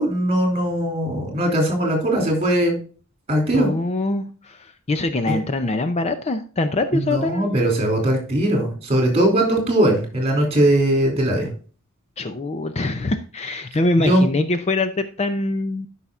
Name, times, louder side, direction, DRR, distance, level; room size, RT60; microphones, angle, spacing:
voice 1, 0.0-2.7 3.3-3.7 5.3-5.4 6.9-11.5 14.0-14.2, right 1 dB, 30° right, 2 dB, 2.8 m, -20 dB
voice 2, 3.5-7.5 12.2-15.9, left 2 dB, 30° left, 9 dB, 0.5 m, -23 dB
12.0 x 5.6 x 2.4 m, 0.39 s
head